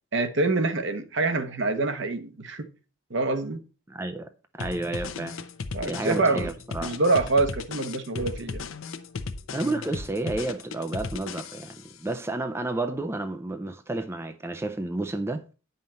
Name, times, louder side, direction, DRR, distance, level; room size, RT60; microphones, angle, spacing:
voice 1, 0.1-2.6 3.1-3.6 5.7-6.5 6.8-8.7, right 3 dB, 60° right, 1.0 m, -25 dB
voice 2, 3.9-5.4 5.9-7.0 9.5-15.4, right 2 dB, 10° right, 0.4 m, -31 dB
sound 1, 4.6-11.9, left 4 dB, 80° left, 0.8 m, -36 dB
9.2 x 5.6 x 4.3 m
head